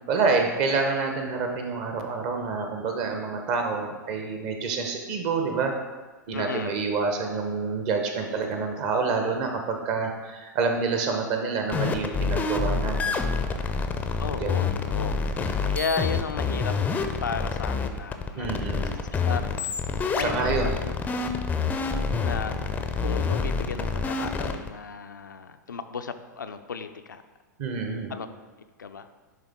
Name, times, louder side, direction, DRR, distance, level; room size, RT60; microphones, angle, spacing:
voice 1, 0.1-5.7 6.3-13.6 14.4-14.8 18.4-19.0 19.3-19.4 20.2-20.7 27.6-28.1, right 4 dB, 45° right, 4 dB, 1.1 m, -28 dB
voice 2, 6.3-6.8 14.2-15.2 15.4-16.8 17.2-18.8 19.2-19.7 20.1-20.9 22.2-22.7 23.0-27.2 28.1-28.3 28.8-29.1, left 5 dB, 75° left, 8 dB, 0.4 m, -34 dB
sound 1, 11.7-24.7, left 4 dB, 15° left, 0.5 m, -27 dB
10.5 x 3.6 x 3.6 m, 1.3 s
figure-of-eight pair, 100°, 10 cm